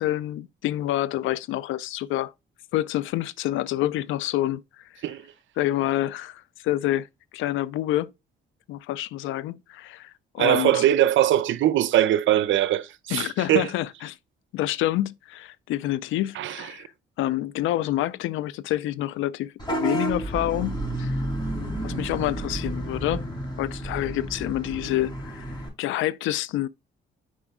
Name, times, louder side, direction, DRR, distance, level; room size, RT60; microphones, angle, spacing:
voice 1, 0.0-2.3 2.7-4.6 5.6-7.1 7.3-8.1 8.7-10.8 13.1-14.2 14.5-16.9 17.2-21.2 21.8-23.3 23.6-25.5 25.8-26.7, left 14 dB, 85° left, 0.4 m, -27 dB
voice 2, 10.4-13.7 16.4-16.8, right 12 dB, 75° right, 0.6 m, -22 dB
Vehicle horn car horn honking / Bus, 19.6-25.7, right 1 dB, 20° left, 4.1 m, -31 dB
6.1 x 5.0 x 3.5 m
cardioid pair, 90°, 20 cm